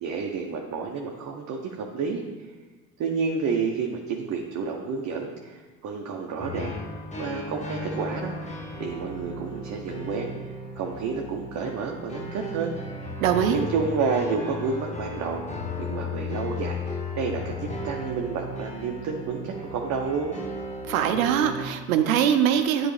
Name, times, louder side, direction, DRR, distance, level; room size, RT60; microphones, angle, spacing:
voice 1, 0.0-2.5 3.0-6.7 7.2-8.3 8.8-10.3 10.8-12.7 13.5-15.4 15.8-16.8 17.1-17.5 17.8-20.4, right 5 dB, 40° right, 1 dB, 0.9 m, -30 dB
sound 1, 6.4-21.7, left 2 dB, 15° left, 1.1 m, -35 dB
voice 2, 13.2-13.6 20.9-22.9, right 9 dB, 75° right, 8 dB, 0.7 m, -22 dB
10.0 x 3.8 x 3.3 m, 1.3 s
hypercardioid pair, 65°, 42 cm